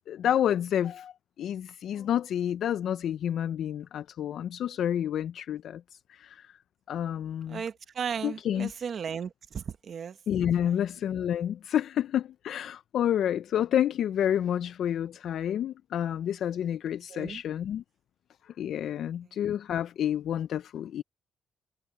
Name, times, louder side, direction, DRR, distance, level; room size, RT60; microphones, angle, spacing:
voice 1, 0.1-1.1 1.4-5.8 6.1-6.4 6.9-7.6 8.2-8.7 10.3-17.8 18.6-21.0, left 10 dB, 70° left, 0.4 m, -29 dB
voice 2, 7.5-10.1 10.7-10.8 17.1-17.4, right 7 dB, 50° right, 1.1 m, -35 dB
cardioid pair, 130°, 0 cm